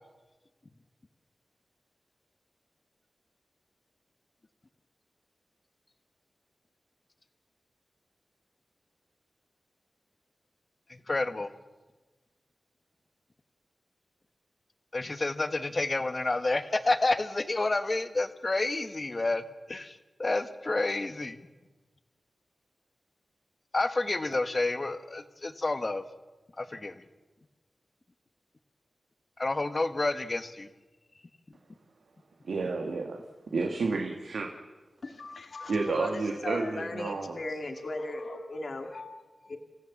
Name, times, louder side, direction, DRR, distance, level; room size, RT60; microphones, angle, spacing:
voice 1, 10.9-11.5 14.9-19.4 19.7-21.4 23.7-26.0 26.6-27.0 29.4-30.7, left 2 dB, 45° left, 9 dB, 1.5 m, -29 dB
voice 2, 32.5-33.2 33.5-34.5 35.7-37.4, right 3 dB, 90° right, 2 dB, 1.8 m, -30 dB
voice 3, 35.0-39.6, left 2 dB, 65° left, 4 dB, 2.2 m, -38 dB
27.5 x 15.5 x 7.3 m, 1.2 s
cardioid pair, 55°, 0 cm